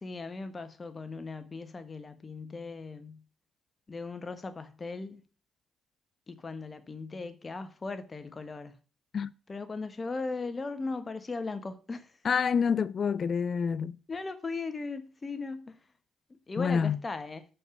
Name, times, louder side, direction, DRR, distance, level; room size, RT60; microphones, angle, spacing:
voice 1, 0.0-3.2 3.9-5.2 6.3-8.7 9.5-12.1 14.1-15.8 16.5-17.4, left 3 dB, 30° left, 1.2 m, -38 dB
voice 2, 12.2-14.0 16.6-17.0, left 6 dB, 50° left, 0.4 m, -27 dB
6.5 x 5.5 x 7.0 m
cardioid pair, 90°, 0 cm